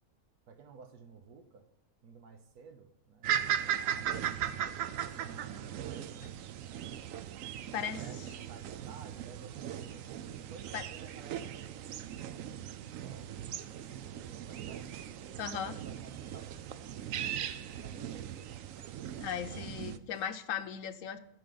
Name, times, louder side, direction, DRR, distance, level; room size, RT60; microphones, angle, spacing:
voice 1, 0.5-1.7 2.0-6.4 7.4-12.5 12.9-13.4 13.7-15.1 15.6-18.5 19.5-20.1, right 5 dB, 85° right, 8 dB, 1.5 m, -54 dB
sound 1, 3.2-20.0, right 10 dB, 70° right, 0.9 m, -38 dB
voice 2, 15.4-15.8 19.2-21.2, left 8 dB, 70° left, 11 dB, 1.0 m, -37 dB
15.0 x 5.2 x 3.9 m, 0.85 s
omnidirectional pair, 1.6 m